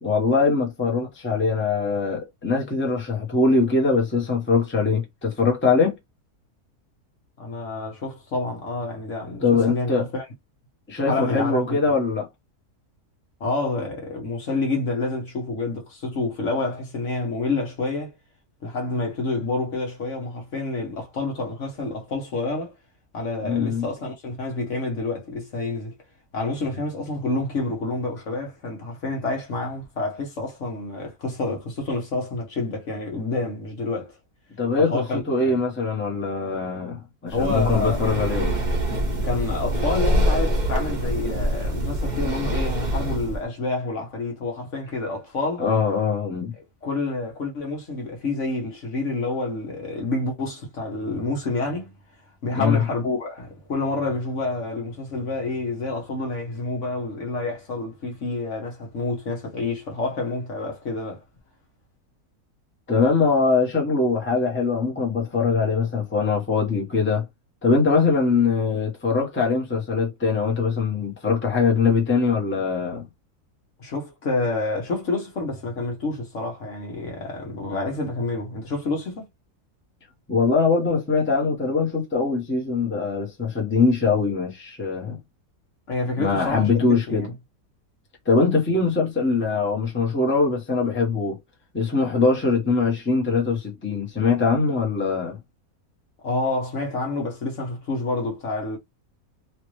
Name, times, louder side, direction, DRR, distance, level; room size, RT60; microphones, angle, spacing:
voice 1, 0.0-5.9 9.4-10.1 10.9-12.3 23.4-23.9 34.6-38.5 45.6-46.5 52.5-52.8 62.9-67.2 67.6-73.0 80.3-85.2 86.2-87.3 88.3-91.4 91.7-95.4, left 4 dB, 10° left, 0.9 m, -22 dB
voice 2, 7.4-10.2 11.1-11.9 13.4-18.1 18.6-22.8 23.1-25.9 26.3-34.2 34.8-35.6 37.3-38.1 39.2-45.6 46.8-51.9 52.4-61.2 73.8-79.2 85.9-87.3 96.2-98.8, left 2 dB, 55° left, 1.2 m, -28 dB
Breathing, 37.3-43.4, equal, 35° right, 0.9 m, -24 dB
3.1 x 2.4 x 3.1 m
omnidirectional pair, 1.7 m